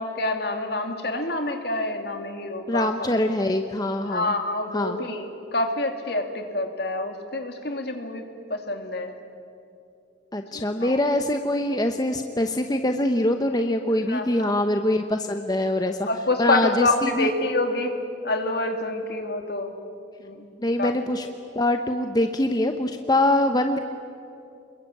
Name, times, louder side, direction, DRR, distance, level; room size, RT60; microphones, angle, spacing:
voice 1, 0.0-2.9 4.0-8.2 8.5-9.1 10.5-11.0 14.1-14.6 16.1-17.9 18.2-19.8 20.2-20.5 20.8-20.9, left 2 dB, 60° left, 5 dB, 2.5 m, -27 dB
voice 2, 2.7-4.3 4.7-5.0 10.3-16.1 16.4-17.3 20.6-21.3 21.5-23.8, left 1 dB, 20° left, 6 dB, 0.9 m, -24 dB
27.5 x 22.0 x 8.6 m, 2.5 s
head